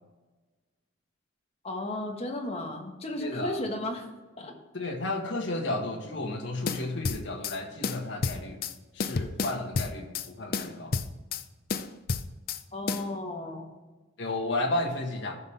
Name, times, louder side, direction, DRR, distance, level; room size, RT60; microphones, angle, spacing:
voice 1, 1.6-4.1 4.4-4.5 12.7-13.7, left 1 dB, 30° left, 1 dB, 1.4 m, -34 dB
voice 2, 3.2-3.6 4.7-8.6 8.9-11.0 14.2-15.4, left 2 dB, 65° left, 2 dB, 1.6 m, -32 dB
sound 1, 6.7-7.6 7.8-8.7 9.0-10.3 10.5-11.4 11.7-12.6 12.9-13.1, left 4 dB, 50° left, 0.5 m, -30 dB
14.5 x 5.6 x 3.4 m, 1.3 s
head